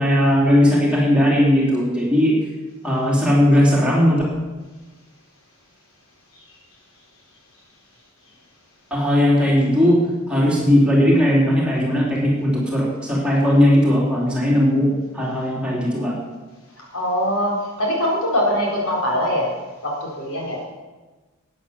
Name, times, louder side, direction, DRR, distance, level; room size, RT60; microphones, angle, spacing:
voice 1, 0.0-2.3 2.8-4.2 8.9-10.0 10.3-14.9 15.1-16.1, left 1 dB, 5° right, -5 dB, 3.5 m, -17 dB
voice 2, 16.8-19.5 19.8-20.6, equal, 70° left, -2 dB, 4.2 m, -22 dB
12.5 x 9.5 x 7.2 m, 1.2 s
head